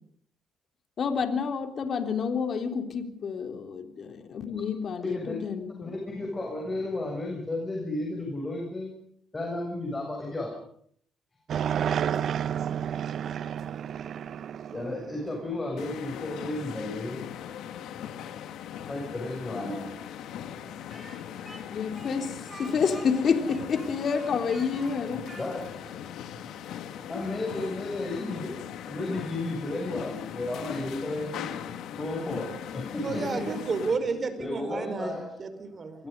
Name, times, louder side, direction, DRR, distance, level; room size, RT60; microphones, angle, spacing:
voice 1, 1.0-6.0 21.7-22.3 22.6-25.3, left 6 dB, 55° left, 6 dB, 3.6 m, -29 dB
voice 2, 5.0-5.4 5.8-8.9 9.3-10.5 14.7-17.2 18.9-19.9 25.4-25.9 27.1-28.5 28.8-31.5 32.0-33.6 34.4-35.3 36.0-36.1, left 2 dB, 20° left, 1 dB, 7.5 m, -33 dB
sound 1, 11.5-15.9, right 9 dB, 60° right, 0.9 m, -31 dB
sound 2, 15.8-34.0, left 9 dB, 85° left, 2.3 m, -39 dB
Speech, 20.9-26.0, right 2 dB, 15° right, 7.2 m, -48 dB
voice 3, 33.0-36.0, right 4 dB, 40° right, 10 dB, 4.8 m, -31 dB
27.0 x 23.0 x 5.4 m, 0.64 s
cardioid pair, 90°, 0 cm